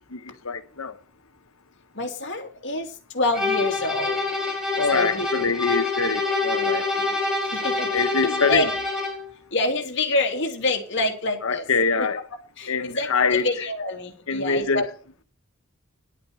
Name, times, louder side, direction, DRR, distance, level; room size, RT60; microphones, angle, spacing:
voice 1, 0.1-1.0 4.7-7.1 7.9-8.8 11.4-12.3 12.7-13.7 14.3-14.9, left 4 dB, 85° left, 1.1 m, -25 dB
voice 2, 2.0-2.9 3.1-4.2 4.9-5.3 7.6-7.9 8.2-8.7 9.5-11.6 12.6-12.7 13.0-14.8, left 2 dB, 60° left, 2.7 m, -26 dB
sound 1, 3.3-9.3, left 3 dB, 5° right, 3.9 m, -26 dB
11.5 x 8.4 x 5.7 m
head